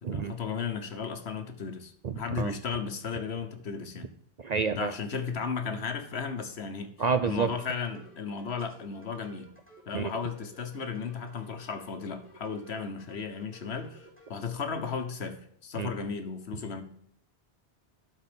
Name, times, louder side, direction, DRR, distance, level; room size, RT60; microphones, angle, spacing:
voice 1, 0.0-4.1 4.7-6.9 7.2-9.5 9.9-16.8, left 6 dB, 70° left, 8 dB, 1.4 m, -35 dB
voice 2, 2.0-2.5 4.4-4.9 7.0-7.5 9.9-10.1 15.7-16.0, right 5 dB, 50° right, 10 dB, 0.5 m, -29 dB
sound 1, 7.4-14.3, right 1 dB, 10° right, 2.7 m, -55 dB
12.0 x 4.4 x 5.1 m, 0.68 s
omnidirectional pair, 1.1 m